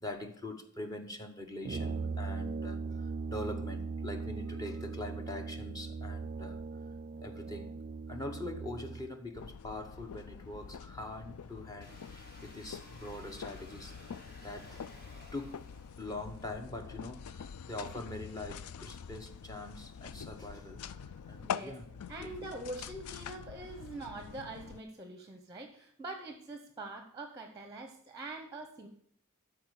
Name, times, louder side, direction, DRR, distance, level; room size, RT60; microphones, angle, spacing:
voice 1, 0.0-6.6 7.2-7.7 8.1-13.9 14.4-14.8 15.3-15.6 16.0-20.8 21.3-21.8 22.2-22.5, left 1 dB, 15° left, 1.0 m, -43 dB
Brass instrument, 1.6-9.1, right 4 dB, 35° right, 0.3 m, -39 dB
sound 1, 9.3-24.8, left 7 dB, 85° left, 0.4 m, -45 dB
sound 2, 11.8-16.4, left 1 dB, 40° left, 2.2 m, -55 dB
voice 2, 21.4-21.8 22.1-28.9, right 2 dB, 15° right, 0.9 m, -44 dB
12.5 x 4.6 x 6.5 m
head